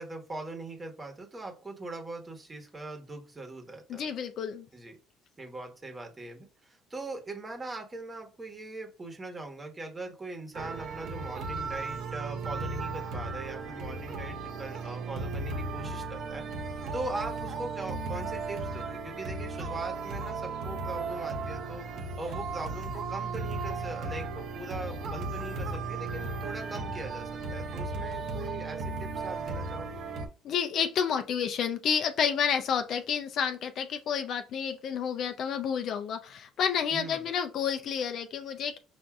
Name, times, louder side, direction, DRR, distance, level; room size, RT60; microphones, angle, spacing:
voice 1, 0.0-4.1 4.7-5.0 5.4-16.4 16.9-21.8 22.1-30.0 36.9-37.3, right 2 dB, 20° right, 1.2 m, -41 dB
voice 2, 3.9-4.7 30.4-38.8, left 7 dB, 55° left, 0.5 m, -30 dB
sound 1, 10.5-30.3, right 3 dB, 65° right, 0.8 m, -35 dB
5.7 x 2.6 x 2.4 m
cardioid pair, 110°, 0 cm